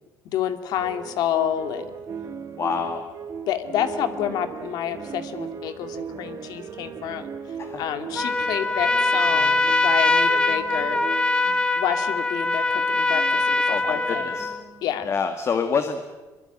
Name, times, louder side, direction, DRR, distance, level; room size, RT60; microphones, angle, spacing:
voice 1, 0.2-1.9 3.5-7.3 7.8-11.0 11.8-14.4 14.8-15.1, left 10 dB, 70° left, 9 dB, 2.3 m, -29 dB
sound 1, 0.8-11.9 12.4-15.2, right 6 dB, 45° right, 2.7 m, -38 dB
voice 2, 2.6-3.0 7.6-7.8 11.5-11.6 13.7-14.5 15.1-16.0, left 6 dB, 40° left, 7 dB, 2.0 m, -27 dB
Trumpet, 8.1-14.6, left 2 dB, 15° left, 1.7 m, -22 dB
23.0 x 23.0 x 9.0 m, 1.2 s
cardioid pair, 115°, 7 cm